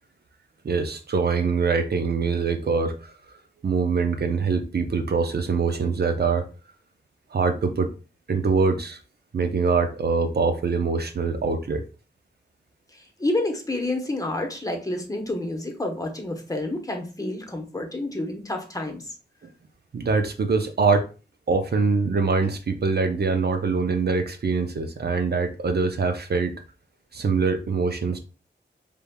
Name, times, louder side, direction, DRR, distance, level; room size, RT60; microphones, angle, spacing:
voice 1, 0.6-3.1 3.6-6.5 7.3-7.9 8.3-9.0 9.3-11.9 19.4-19.5 19.9-21.1 21.5-26.6 27.1-28.2, right 4 dB, 60° right, 0.8 m, -24 dB
voice 2, 12.9-19.1, left 2 dB, 20° left, 1.1 m, -29 dB
5.1 x 3.4 x 2.3 m
wide cardioid pair, 80°, 19 cm